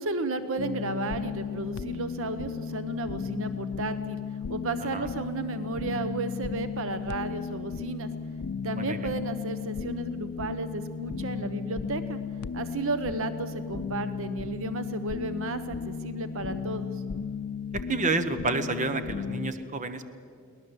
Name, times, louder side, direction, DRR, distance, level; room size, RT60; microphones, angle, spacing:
voice 1, 0.0-4.2 4.5-8.1 8.6-12.2 12.5-17.0, right 2 dB, 60° right, 11 dB, 1.0 m, -33 dB
sound 1, 0.6-19.5, left 5 dB, 90° left, 0.6 m, -35 dB
voice 2, 17.9-20.1, right 3 dB, 35° right, 10 dB, 1.1 m, -29 dB
23.5 x 18.0 x 7.9 m, 2.3 s
head